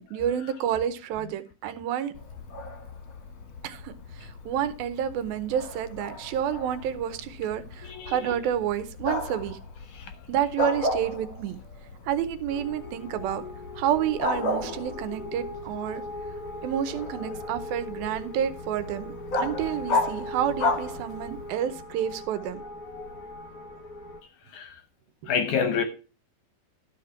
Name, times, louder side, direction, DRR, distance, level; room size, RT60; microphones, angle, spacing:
voice 1, 0.0-2.1 3.6-9.6 10.3-11.6 12.1-13.4 13.8-16.0 16.6-22.6 25.2-25.3, right 9 dB, 85° right, 2.7 m, -29 dB
Bark, 2.1-21.5, left 2 dB, 50° left, 1.6 m, -34 dB
voice 2, 7.8-8.2 9.9-10.1 22.9-23.1 24.5-24.8 25.3-25.8, left 6 dB, 70° left, 1.9 m, -28 dB
sound 1, 12.5-24.2, left 1 dB, 90° left, 0.8 m, -39 dB
12.0 x 5.1 x 5.7 m
omnidirectional pair, 4.1 m